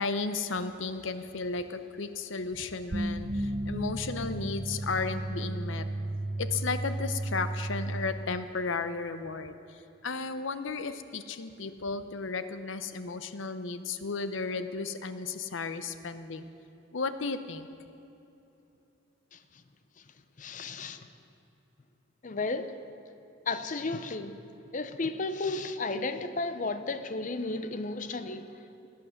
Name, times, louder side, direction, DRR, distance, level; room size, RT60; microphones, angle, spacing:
voice 1, 0.0-5.9 6.4-16.5 16.9-17.7, left 4 dB, 70° left, 11 dB, 0.7 m, -34 dB
sound 1, 2.9-8.0, right 1 dB, 40° right, 0.9 m, -33 dB
voice 2, 19.3-19.6 20.0-20.1 20.4-21.1 22.2-22.8 23.5-24.4 24.7-28.9, left 3 dB, 40° left, 10 dB, 0.6 m, -34 dB
17.0 x 10.5 x 6.5 m, 2.9 s
head